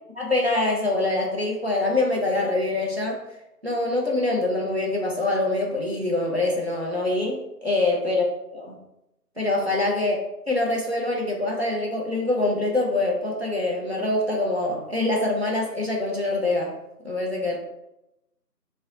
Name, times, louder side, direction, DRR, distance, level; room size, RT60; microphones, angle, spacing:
voice 1, 0.2-3.2 3.6-8.2 8.5-8.7 9.4-10.2 10.5-16.7 17.0-17.6, left 2 dB, 40° right, -2 dB, 0.5 m, -24 dB
2.6 x 2.1 x 3.7 m, 0.88 s
figure-of-eight pair, 165°, 48 cm